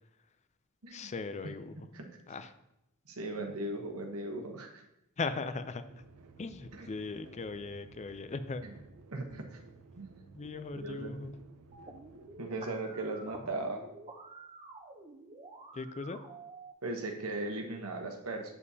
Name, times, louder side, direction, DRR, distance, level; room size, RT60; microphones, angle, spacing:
voice 1, 0.9-1.8 2.3-2.5 5.2-5.8 6.4-8.6 10.3-11.3 15.7-16.2, left 4 dB, 30° left, 11 dB, 0.4 m, -38 dB
voice 2, 1.8-2.1 3.1-4.8 6.8-6.9 9.1-9.6 10.0-10.1 10.7-11.3 12.4-13.8 16.8-18.5, right 2 dB, 70° right, 3 dB, 1.0 m, -38 dB
sound 1, 5.9-12.5, right 4 dB, 90° right, 0.6 m, -56 dB
sound 2, 11.7-16.7, right 3 dB, 30° right, 0.7 m, -50 dB
8.4 x 7.0 x 2.8 m, 0.86 s
head